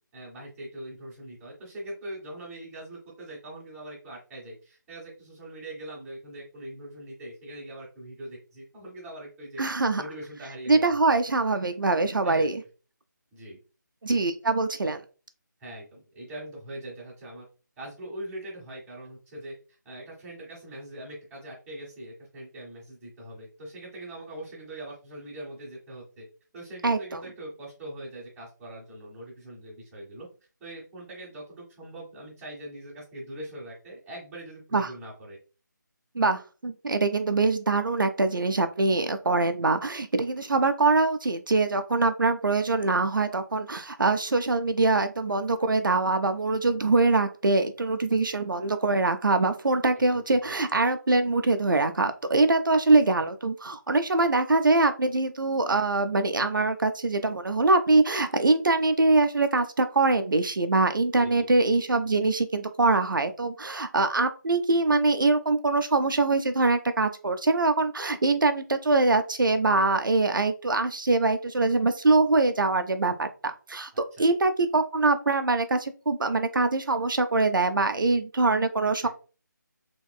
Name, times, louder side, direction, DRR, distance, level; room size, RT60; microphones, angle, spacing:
voice 1, 0.1-9.6 9.9-11.0 12.2-12.5 13.3-13.6 15.6-17.4 17.8-19.5 19.8-26.2 26.5-30.3 30.6-35.4 49.9-50.5 61.1-61.5 73.9-74.3 79.0-79.1, right 1 dB, 10° right, -7 dB, 1.2 m, -42 dB
voice 2, 9.6-10.0 10.7-12.6 14.0-15.0 26.8-27.2 34.7-34.9 36.1-79.1, right 3 dB, 90° right, 8 dB, 0.5 m, -23 dB
3.6 x 3.0 x 2.3 m, 0.35 s
figure-of-eight pair, 160°, 11 cm